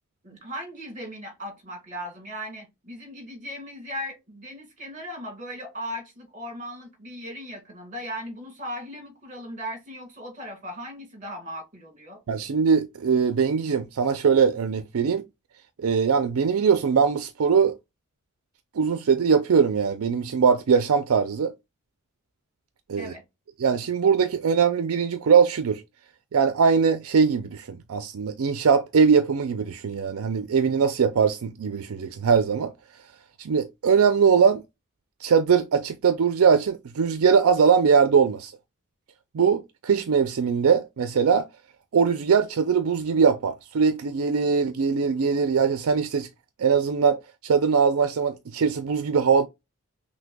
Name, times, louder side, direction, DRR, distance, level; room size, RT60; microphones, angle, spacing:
voice 1, 0.2-12.2 23.0-23.2, equal, 35° right, 1.6 m, -37 dB
voice 2, 12.3-15.2 15.8-17.8 18.7-21.5 22.9-23.1 23.6-25.8 26.3-32.7 33.4-34.6 35.2-38.5 39.3-41.5 41.9-46.3 46.6-49.5, right 6 dB, 75° right, 0.4 m, -21 dB
5.9 x 2.2 x 2.2 m
head